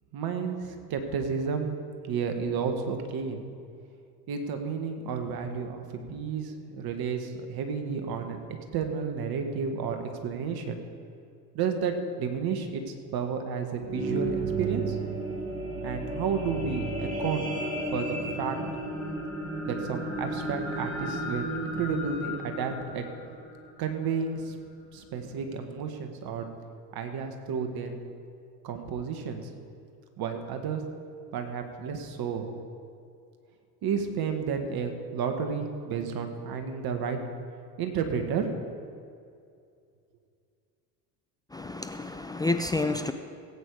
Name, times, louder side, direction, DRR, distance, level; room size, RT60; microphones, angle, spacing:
voice 1, 0.1-1.8 2.0-3.5 4.3-8.4 8.7-10.8 11.5-15.0 15.8-17.5 17.9-18.6 19.6-23.1 23.8-24.6 24.9-26.5 26.9-27.9 28.6-29.5 30.2-30.8 31.3-32.5 33.8-37.2 37.8-38.5, right 6 dB, 45° right, 6 dB, 1.8 m, -31 dB
sound 1, 13.7-24.1 24.7-24.8, right 2 dB, 25° right, 3.7 m, -33 dB
voice 2, 41.5-43.1, left 2 dB, 10° left, 6 dB, 0.5 m, -29 dB
17.5 x 8.6 x 4.9 m, 2.4 s
hypercardioid pair, 75°, 49 cm